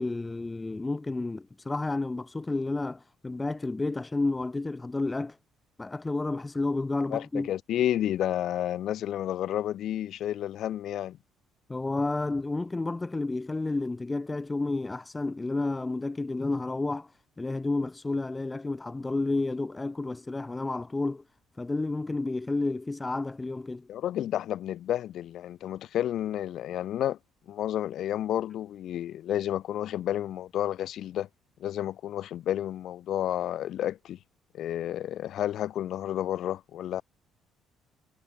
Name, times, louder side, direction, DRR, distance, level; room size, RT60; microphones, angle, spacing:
voice 1, 0.0-5.4 5.8-7.5 11.7-17.1 17.4-21.2 21.6-23.9, left 2 dB, 15° left, 0.3 m, -31 dB
voice 2, 7.1-11.2 23.9-27.2 27.5-31.3 31.6-34.2 34.5-37.0, left 11 dB, 60° left, 1.0 m, -31 dB
cardioid pair, 145°, 0 cm